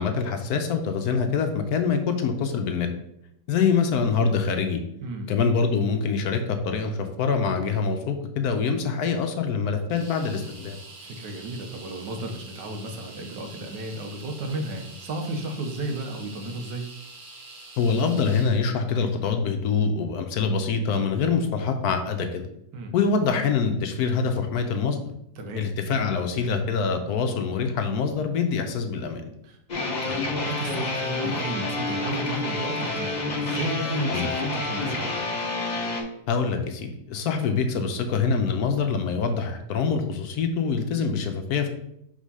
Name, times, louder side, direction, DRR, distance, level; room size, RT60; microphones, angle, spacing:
voice 1, 0.0-2.9 3.5-4.8 5.3-10.8 17.8-22.5 22.9-25.0 25.6-29.2 34.1-34.3 36.3-41.8, left 5 dB, 70° left, 6 dB, 1.1 m, -25 dB
voice 2, 5.0-5.4 11.0-16.9 22.7-22.9 25.4-25.7 29.4-29.6 30.0-35.2, right 1 dB, 80° right, 5 dB, 1.5 m, -33 dB
sound 1, 9.9-18.6, right 2 dB, 40° right, 0.9 m, -45 dB
sound 2, 29.7-36.0, left 2 dB, 35° left, 0.7 m, -28 dB
4.9 x 3.6 x 5.4 m, 0.78 s
omnidirectional pair, 1.9 m